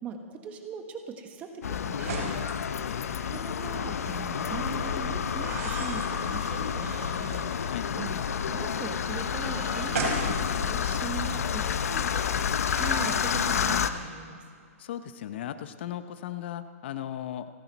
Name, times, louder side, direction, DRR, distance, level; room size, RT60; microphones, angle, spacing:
voice 1, 0.0-2.4 3.3-14.4, right 5 dB, 15° right, 5 dB, 1.3 m, -40 dB
sound 1, 1.6-13.9, left 7 dB, 75° left, 0.8 m, -29 dB
sound 2, 2.0-2.5 3.5-3.7 5.3-7.6 8.0-11.1 12.5-13.9, right 3 dB, 70° right, 4.2 m, -38 dB
voice 2, 2.8-3.4 7.6-8.0 11.3-11.8 14.8-17.5, left 11 dB, 45° left, 11 dB, 0.8 m, -38 dB
29.0 x 10.0 x 4.2 m, 2.2 s
hypercardioid pair, 165°, 8 cm